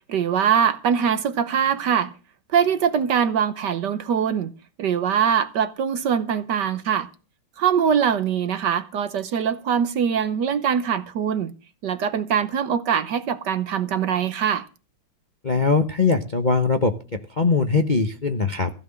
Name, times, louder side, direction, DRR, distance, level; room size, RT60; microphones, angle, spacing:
voice 1, 0.1-2.1 2.5-4.5 4.8-7.1 7.6-11.5 11.8-14.7, right 8 dB, 60° right, 1.4 m, -22 dB
voice 2, 15.4-18.7, left 4 dB, 30° left, 0.8 m, -21 dB
15.5 x 6.0 x 8.7 m
omnidirectional pair, 2.3 m